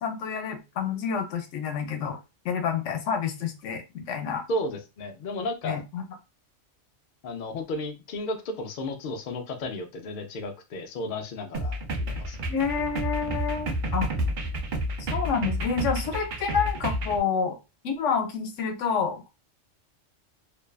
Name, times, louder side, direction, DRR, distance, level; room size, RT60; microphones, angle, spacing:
voice 1, 0.0-2.2 2.4-4.4 5.6-6.0 12.5-14.1 15.1-17.6 17.8-19.3, left 6 dB, 80° left, 5 dB, 0.9 m, -28 dB
voice 2, 4.5-5.8 7.2-12.4, left 1 dB, 60° left, 5 dB, 0.5 m, -33 dB
sound 1, 11.5-17.2, equal, 55° right, 0.6 m, -30 dB
2.6 x 2.2 x 2.2 m, 0.26 s
omnidirectional pair, 1.2 m